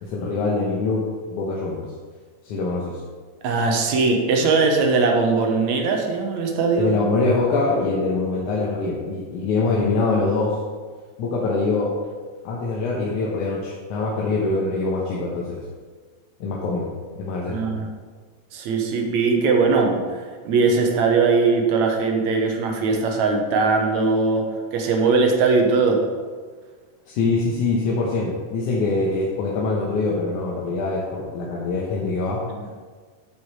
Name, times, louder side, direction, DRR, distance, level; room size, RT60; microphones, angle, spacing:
voice 1, 0.0-1.0 1.3-1.8 2.4-3.0 6.7-10.6 11.2-11.9 12.4-15.6 16.4-16.9 17.2-17.7 27.1-32.4, left 3 dB, 80° left, -4 dB, 2.5 m, -24 dB
voice 2, 3.4-6.9 17.5-17.9 18.5-24.5 24.7-26.0 32.5-32.7, right 4 dB, 70° right, 2 dB, 2.3 m, -20 dB
11.0 x 5.3 x 4.7 m, 1.5 s
omnidirectional pair, 3.5 m